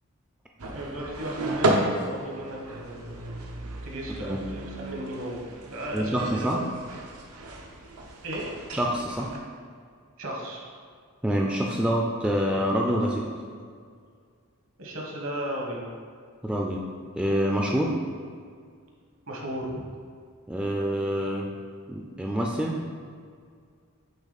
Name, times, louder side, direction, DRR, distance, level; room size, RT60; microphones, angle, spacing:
sound 1, 0.6-9.4, right 2 dB, 85° right, 0.8 m, -33 dB
voice 1, 0.7-3.2 3.8-6.5 8.2-8.5 10.2-10.6 14.8-15.8 19.3-19.8, right 1 dB, 65° right, -2 dB, 1.3 m, -35 dB
voice 2, 5.9-6.7 8.7-9.3 11.2-13.3 16.4-16.9 17.2-18.0 20.5-21.5 21.9-22.9, equal, 5° right, -1 dB, 0.3 m, -26 dB
8.3 x 3.6 x 4.1 m, 2.1 s
head